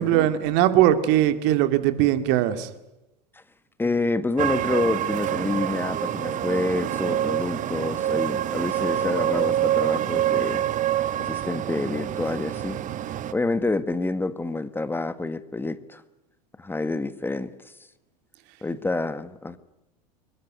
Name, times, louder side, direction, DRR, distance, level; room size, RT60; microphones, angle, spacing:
voice 1, 0.0-2.7, right 12 dB, 55° right, 2.2 m, -20 dB
voice 2, 3.8-10.6 11.2-12.8 13.3-16.0 16.6-17.5 18.6-19.6, left 2 dB, 10° left, 1.4 m, -28 dB
sound 1, 4.4-13.3, right 11 dB, 35° right, 1.3 m, -26 dB
24.0 x 21.5 x 9.5 m
hypercardioid pair, 85°, 21 cm